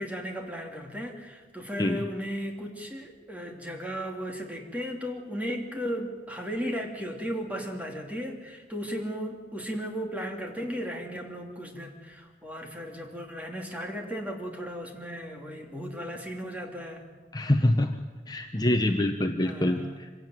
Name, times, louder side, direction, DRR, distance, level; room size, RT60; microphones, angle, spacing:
voice 1, 0.0-17.0 19.4-20.1, equal, 10° right, 2 dB, 2.8 m, -35 dB
voice 2, 17.3-17.9 18.3-19.8, left 1 dB, 25° left, 5 dB, 1.0 m, -25 dB
25.0 x 17.0 x 9.3 m, 1.4 s
head